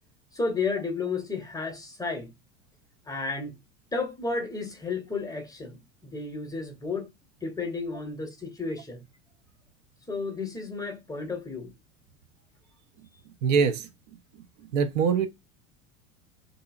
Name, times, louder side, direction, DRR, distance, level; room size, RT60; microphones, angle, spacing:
voice 1, 0.3-2.3 3.1-3.6 3.9-5.8 6.0-7.1 7.4-9.0 10.1-11.7, left 4 dB, 10° left, 0.7 m, -32 dB
voice 2, 13.4-13.9 14.6-15.3, right 6 dB, 60° right, 0.5 m, -23 dB
2.7 x 2.7 x 2.3 m
figure-of-eight pair, 80°, 42 cm